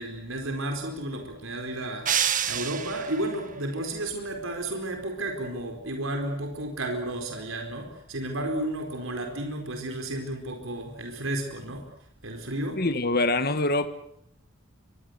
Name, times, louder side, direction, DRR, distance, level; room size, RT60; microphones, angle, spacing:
voice 1, 0.0-11.8 12.2-12.8, right 1 dB, 75° right, 4.5 m, -32 dB
sound 1, 2.1-3.3, right 9 dB, 40° right, 1.5 m, -27 dB
voice 2, 12.8-13.9, left 2 dB, 50° left, 1.6 m, -24 dB
25.5 x 21.5 x 8.1 m
head